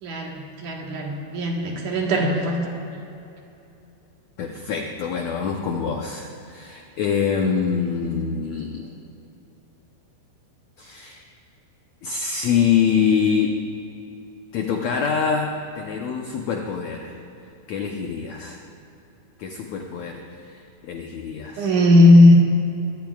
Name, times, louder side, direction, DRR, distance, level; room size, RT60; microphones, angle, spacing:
voice 1, 0.0-2.7 21.6-22.3, left 1 dB, 60° right, -1 dB, 2.7 m, -17 dB
voice 2, 4.4-8.9 10.8-11.3 12.0-13.6 14.5-17.2 17.7-18.6 19.4-21.7, left 6 dB, 75° left, 2 dB, 1.6 m, -25 dB
22.5 x 17.5 x 2.4 m, 2.8 s
omnidirectional pair, 4.3 m